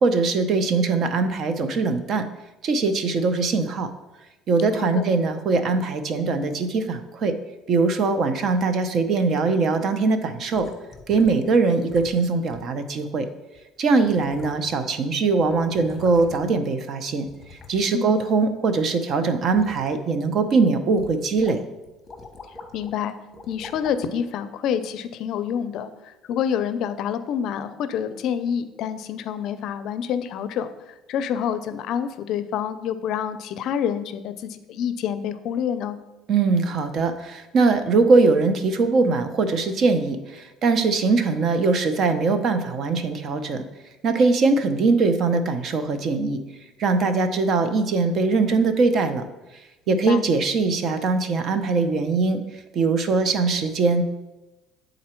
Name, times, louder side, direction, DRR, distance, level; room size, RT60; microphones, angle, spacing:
voice 1, 0.0-2.2 2.6-3.9 4.5-7.3 7.7-10.7 11.1-13.3 13.8-17.2 17.5-21.6 36.3-43.6 44.0-46.4 46.8-49.2 49.9-52.4 52.7-54.0, right 4 dB, 45° right, 9 dB, 0.6 m, -21 dB
voice 2, 4.8-5.1 17.9-18.1 22.7-23.2 23.5-36.0 49.9-50.3, left 8 dB, 60° left, 12 dB, 0.4 m, -27 dB
sound 1, 10.5-11.5 11.9-12.2 12.5-12.7 13.5-13.6 14.0-14.9 15.2-16.6 17.3-18.8 19.1-19.9 20.4-20.5 21.0-21.5 21.8-22.9 23.3-24.0 24.7-24.8, left 3 dB, 20° left, 0.9 m, -44 dB
8.5 x 3.9 x 4.4 m, 1.0 s
cardioid pair, 140°, 0 cm